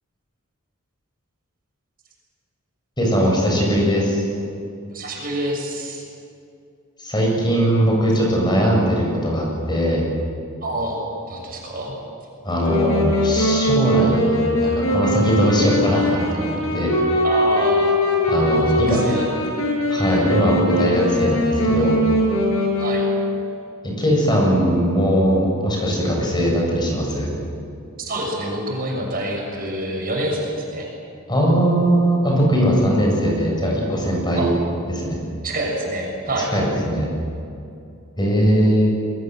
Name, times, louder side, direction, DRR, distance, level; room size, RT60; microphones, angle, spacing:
voice 1, 3.0-4.2 7.0-10.0 12.4-16.9 18.3-19.2 19.9-22.0 23.8-27.3 31.3-34.5 34.9-35.2 36.5-37.1 38.2-38.9, equal, 20° left, -2 dB, 8.0 m, -20 dB
voice 2, 4.9-6.0 10.6-11.9 17.2-17.9 18.6-19.3 22.8-23.1 28.0-30.9 34.4-34.5 35.4-36.5, right 1 dB, 45° right, 0 dB, 6.7 m, -27 dB
Wind instrument woodwind instrument, 12.6-23.5, equal, 70° left, 7.5 m, -21 dB
28.5 x 22.0 x 7.9 m, 2.5 s
head